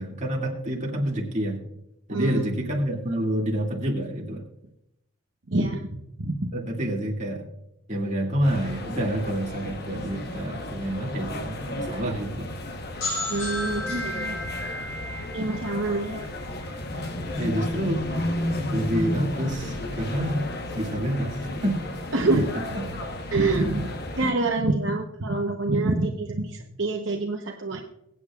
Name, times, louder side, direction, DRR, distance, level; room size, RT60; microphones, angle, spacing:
voice 1, 0.0-1.6 2.1-4.4 6.5-7.4 7.9-12.5 17.4-18.0 18.7-20.5 20.7-21.8, right 1 dB, 35° right, -1 dB, 2.2 m, -28 dB
voice 2, 2.1-2.4 5.5-6.5 13.3-14.4 15.3-16.2 22.1-22.4 23.3-27.8, right 2 dB, 60° right, 1 dB, 0.9 m, -26 dB
sound 1, 8.4-24.3, left 1 dB, 50° left, 1.1 m, -33 dB
sound 2, 13.0-16.7, left 1 dB, 75° left, 4.5 m, -33 dB
23.0 x 8.6 x 2.4 m, 0.82 s
head